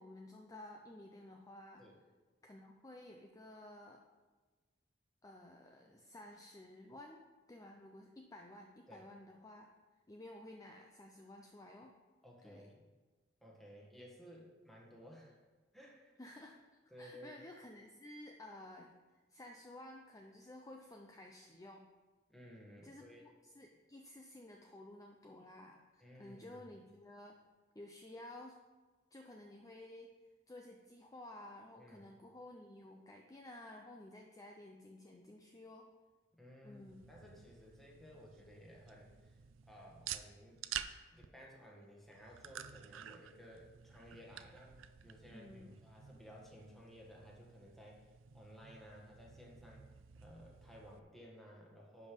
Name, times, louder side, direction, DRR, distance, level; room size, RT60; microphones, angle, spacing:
voice 1, 0.0-1.8 2.4-4.0 5.2-7.2 7.5-9.7 10.1-11.9 12.4-12.7 16.2-16.6 17.0-18.9 19.3-21.9 22.8-27.4 27.7-28.6 29.1-35.9 36.6-37.1 45.3-45.8, left 1 dB, 20° left, 2 dB, 0.6 m, -54 dB
voice 2, 12.2-12.8 13.4-15.4 15.7-16.2 16.9-17.3 22.3-23.2 26.0-26.7 31.8-32.1 36.3-39.3 39.7-40.6 41.1-52.1, equal, ahead, -3 dB, 1.6 m, -57 dB
sound 1, 36.7-51.0, right 10 dB, 80° right, 0.5 m, -51 dB
10.5 x 5.3 x 5.2 m, 1.3 s
head